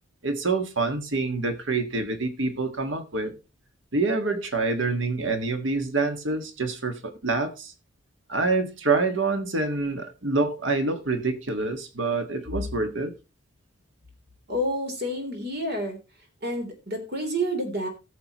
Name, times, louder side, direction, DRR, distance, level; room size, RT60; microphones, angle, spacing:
voice 1, 0.2-3.3 3.9-7.7 8.3-13.1, right 3 dB, 70° right, 1.6 m, -26 dB
voice 2, 14.5-16.0 16.4-17.9, equal, 55° right, 3.4 m, -29 dB
18.0 x 6.8 x 3.0 m
head